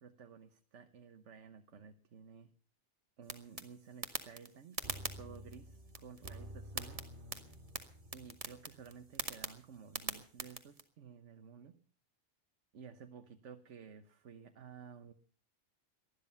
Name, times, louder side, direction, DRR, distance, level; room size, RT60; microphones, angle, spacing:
voice 1, 0.0-2.5 3.2-7.0 8.1-11.7 12.7-15.1, right 6 dB, 80° right, 8 dB, 1.4 m, -54 dB
sound 1, 3.2-10.8, right 3 dB, 30° right, 1.7 m, -45 dB
sound 2, 4.8-9.5 9.8-9.9, equal, 45° right, 2.0 m, -52 dB
19.5 x 13.0 x 5.6 m, 0.44 s
omnidirectional pair, 1.2 m